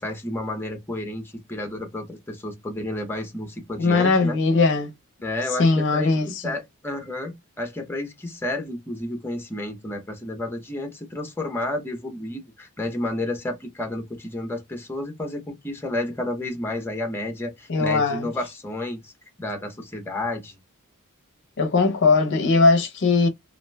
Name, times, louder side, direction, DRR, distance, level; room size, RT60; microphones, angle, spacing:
voice 1, 0.0-4.4 5.2-19.1 19.4-20.6, left 1 dB, 10° left, 0.7 m, -31 dB
voice 2, 3.8-4.9 5.6-6.3 17.7-18.3 21.6-23.3, left 3 dB, 55° left, 0.5 m, -19 dB
2.4 x 2.1 x 3.2 m
head